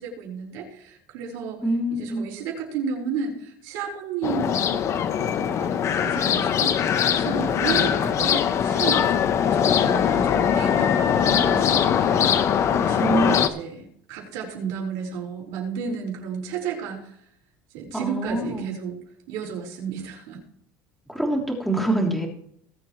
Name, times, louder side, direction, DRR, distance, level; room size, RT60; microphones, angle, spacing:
voice 1, 0.0-4.9 5.2-9.1 9.4-12.3 12.7-17.2 17.7-19.0 19.3-20.4, right 6 dB, 85° right, -1 dB, 5.1 m, -33 dB
voice 2, 1.6-2.3 7.6-7.7 13.0-13.4 17.9-18.7 21.1-22.3, right 2 dB, ahead, -1 dB, 3.2 m, -25 dB
sound 1, 4.2-13.5, left 8 dB, 45° left, 1.0 m, -21 dB
20.0 x 8.1 x 3.2 m, 0.67 s
cardioid pair, 120°, 7 cm